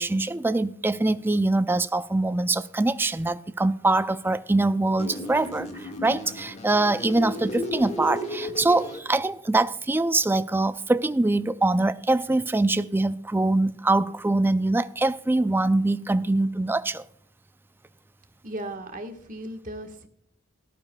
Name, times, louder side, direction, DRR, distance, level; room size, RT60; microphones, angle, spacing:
voice 1, 0.0-17.0, right 2 dB, 10° right, 0.4 m, -23 dB
sound 1, 5.0-9.0, left 1 dB, 35° left, 1.7 m, -34 dB
voice 2, 18.4-20.1, right 1 dB, 40° right, 1.4 m, -36 dB
18.0 x 11.5 x 2.3 m
head